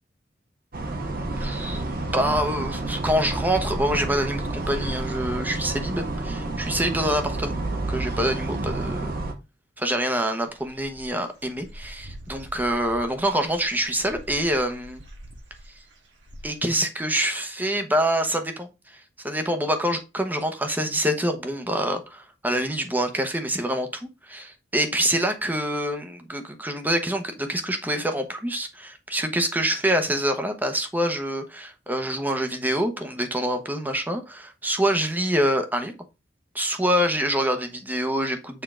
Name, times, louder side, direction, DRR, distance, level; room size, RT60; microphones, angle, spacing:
sound 1, 0.7-9.3, right 2 dB, 55° right, 1.3 m, -29 dB
voice 1, 1.4-9.1 9.8-15.0 16.4-18.7 19.2-36.0 36.5-38.6, right 1 dB, 10° right, 1.0 m, -26 dB
Dog / Bird, 10.4-16.7, equal, 75° right, 1.6 m, -45 dB
6.9 x 3.7 x 3.7 m
head